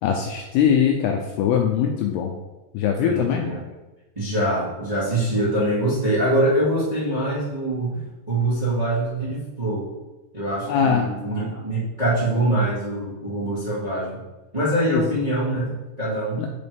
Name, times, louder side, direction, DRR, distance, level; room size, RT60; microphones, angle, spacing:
voice 1, 0.0-2.3 2.7-3.5 10.7-11.1 14.9-15.1 16.4-16.5, left 8 dB, 80° left, 2 dB, 2.4 m, -21 dB
voice 2, 3.0-3.6 4.1-8.0 8.3-9.9 10.3-14.2 14.5-16.5, right 1 dB, 15° right, -9 dB, 1.5 m, -24 dB
8.6 x 6.8 x 3.5 m, 1.1 s
omnidirectional pair, 5.1 m